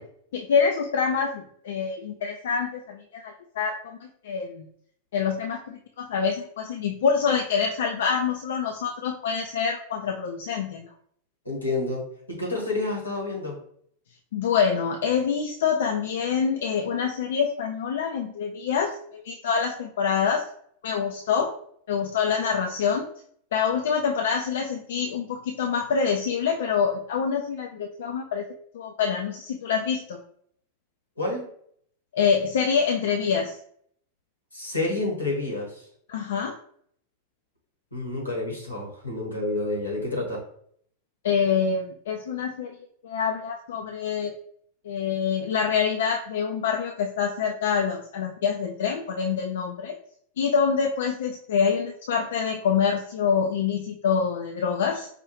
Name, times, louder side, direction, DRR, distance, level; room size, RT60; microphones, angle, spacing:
voice 1, 0.3-4.7 5.1-10.9 14.3-20.5 20.8-21.5 21.9-23.1 23.5-28.5 28.7-30.2 32.1-33.6 36.1-36.6 41.2-42.8 43.0-44.3 44.8-50.0 50.4-55.1, left 6 dB, 60° left, 3 dB, 0.3 m, -26 dB
voice 2, 11.4-13.6 31.2-31.5 34.5-35.8 37.9-40.4, left 2 dB, 85° left, -2 dB, 1.4 m, -29 dB
4.8 x 2.3 x 3.1 m, 0.65 s
figure-of-eight pair, 90°, 0 cm